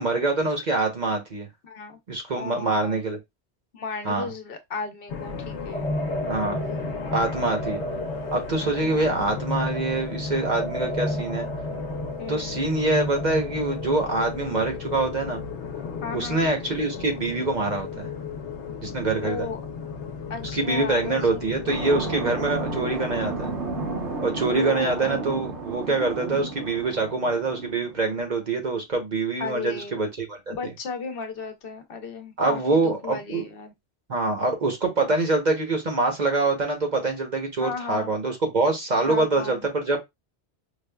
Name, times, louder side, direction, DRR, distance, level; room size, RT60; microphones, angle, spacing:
voice 1, 0.0-1.5 2.1-3.2 4.0-4.3 6.3-6.6 7.1-7.8 8.3-11.5 12.3-15.4 16.1-18.1 18.8-19.5 20.5-23.5 24.2-30.7 32.4-33.5 34.1-40.0, right 3 dB, 45° right, 0.9 m, -25 dB
voice 2, 1.6-2.0 2.3-2.9 3.7-5.9 8.9-9.1 11.0-11.2 12.2-12.6 16.0-16.5 19.2-19.6 20.3-21.4 24.5-25.0 29.4-30.0 30.5-33.7 37.6-38.1 39.1-39.7, left 5 dB, 60° left, 0.9 m, -35 dB
sound 1, 5.1-24.2, left 5 dB, 85° left, 1.0 m, -35 dB
sound 2, 5.7-14.0, equal, 5° left, 0.5 m, -33 dB
sound 3, 21.7-28.1, right 3 dB, 80° right, 1.2 m, -32 dB
4.9 x 2.2 x 2.2 m
omnidirectional pair, 1.1 m